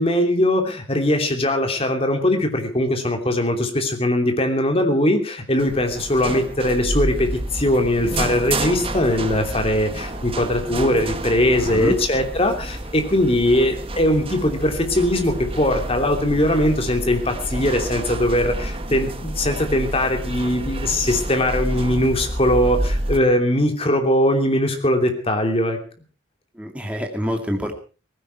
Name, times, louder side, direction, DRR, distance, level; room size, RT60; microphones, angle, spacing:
voice 1, 0.0-25.8, left 1 dB, 30° left, 5 dB, 3.0 m, -20 dB
sound 1, 5.6-23.2, right 1 dB, 30° right, 1.7 m, -29 dB
sound 2, 5.7-21.9, left 1 dB, 85° left, 7.0 m, -47 dB
voice 2, 11.6-12.0 26.5-27.7, equal, 5° right, 3 dB, 2.4 m, -26 dB
18.5 x 16.0 x 4.7 m, 0.36 s
head